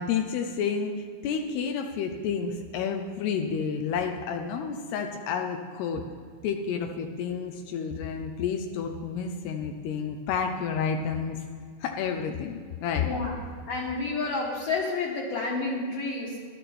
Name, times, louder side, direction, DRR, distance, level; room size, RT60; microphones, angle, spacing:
voice 1, 0.0-6.0 6.4-11.4 11.8-13.1, left 6 dB, 90° left, 4 dB, 2.3 m, -30 dB
voice 2, 13.0-13.4 13.7-16.4, left 3 dB, 60° left, -4 dB, 2.5 m, -30 dB
16.0 x 12.0 x 4.3 m, 2.1 s
omnidirectional pair, 5.7 m